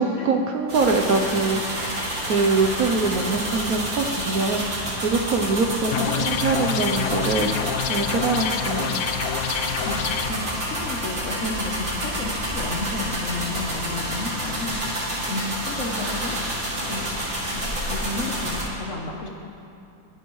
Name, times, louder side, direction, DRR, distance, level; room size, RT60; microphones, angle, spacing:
voice 1, 0.0-9.0, right 3 dB, 70° right, 4 dB, 0.8 m, -24 dB
sound 1, 0.7-18.6, right 1 dB, 35° right, 2.7 m, -29 dB
sound 2, 5.9-10.3, left 10 dB, 75° left, 1.2 m, -27 dB
voice 2, 10.3-14.8 15.3-16.4 16.8-17.1 17.5-19.3, left 3 dB, 50° left, 0 dB, 1.0 m, -32 dB
20.5 x 10.5 x 3.1 m, 2.6 s
omnidirectional pair, 2.3 m